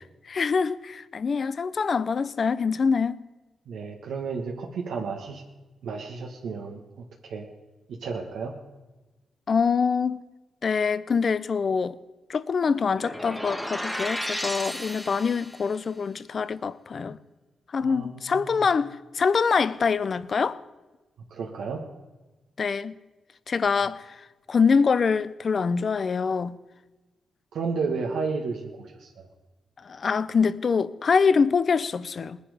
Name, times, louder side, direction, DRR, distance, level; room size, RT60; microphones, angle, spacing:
voice 1, 0.3-3.2 9.5-10.2 10.6-12.0 12.3-17.2 17.7-20.6 22.6-23.0 23.5-24.1 24.5-26.6 29.8-32.4, left 5 dB, 45° left, 0.6 m, -24 dB
voice 2, 3.7-5.4 5.8-6.8 7.2-7.4 8.0-8.5 17.8-18.6 21.3-21.8 27.5-29.3, right 4 dB, 85° right, 1.5 m, -32 dB
sound 1, 12.9-15.7, equal, 5° left, 1.1 m, -33 dB
20.0 x 10.0 x 5.0 m
cardioid pair, 105°, 0 cm